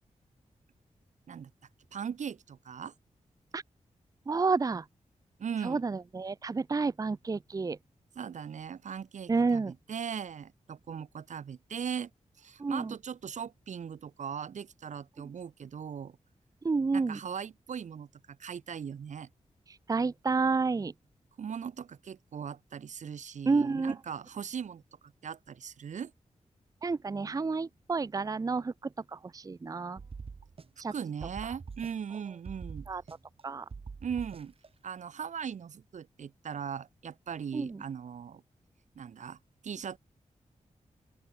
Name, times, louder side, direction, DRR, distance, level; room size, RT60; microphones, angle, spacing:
voice 1, 1.9-2.9 5.4-5.8 8.2-12.1 12.4-16.2 16.9-19.3 21.4-24.8 25.2-26.1 30.9-32.9 34.0-34.5 34.8-38.4 38.9-39.4 39.6-40.0, right 7 dB, 75° right, 1.2 m, -39 dB
voice 2, 4.3-4.9 5.6-7.8 9.3-9.7 12.6-12.9 16.6-17.2 19.7-20.9 23.5-23.9 26.8-30.0 30.8-30.9 32.9-33.0 33.4-33.7 37.5-37.8, right 4 dB, 30° right, 0.6 m, -30 dB
sound 1, 30.0-30.9 31.2-32.2 32.5-33.4 33.7-34.7, right 5 dB, 50° right, 4.1 m, -44 dB
open air
wide cardioid pair, 125°, 13 cm